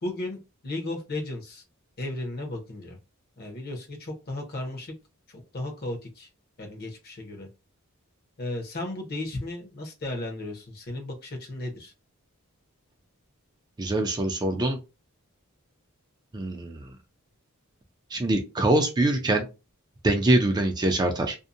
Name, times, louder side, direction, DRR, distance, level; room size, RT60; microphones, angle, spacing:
voice 1, 0.0-1.6 2.0-3.0 3.4-4.9 5.3-6.3 6.6-7.5 8.4-11.9, left 2 dB, 45° left, 2 dB, 0.8 m, -35 dB
voice 2, 13.8-14.8 16.3-16.9 18.1-19.5 20.0-21.4, right 2 dB, 20° right, 3 dB, 0.4 m, -24 dB
2.6 x 2.1 x 2.5 m, 0.28 s
head